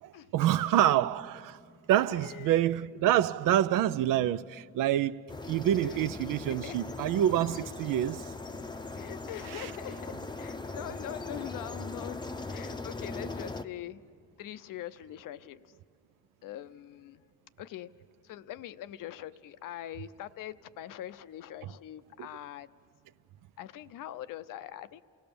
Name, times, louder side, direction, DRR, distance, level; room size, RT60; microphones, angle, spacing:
voice 1, 0.0-1.6 1.9-5.2 5.5-8.2 9.5-9.7 22.2-22.3, right 12 dB, 90° right, 0.5 m, -27 dB
voice 2, 2.1-2.6 5.8-6.1 6.5-6.8 7.3-7.7 8.9-12.2 12.5-14.0 14.4-15.7 16.4-17.2 17.6-17.9 18.2-22.7 23.6-25.0, left 12 dB, 90° left, 0.6 m, -43 dB
sound 1, 5.3-13.6, left 3 dB, 15° left, 0.6 m, -40 dB
28.5 x 17.0 x 6.9 m
cardioid pair, 100°, 32 cm